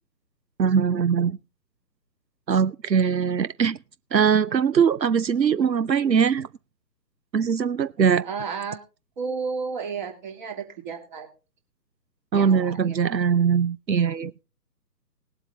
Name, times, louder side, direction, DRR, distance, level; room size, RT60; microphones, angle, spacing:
voice 1, 0.6-1.4 2.5-3.8 4.1-6.5 7.3-8.2 12.3-14.3, right 7 dB, 85° right, 0.7 m, -21 dB
voice 2, 8.2-8.8 9.2-11.3 12.3-13.0, right 5 dB, 30° right, 3.0 m, -32 dB
19.5 x 7.9 x 4.1 m
figure-of-eight pair, 145°, 50 cm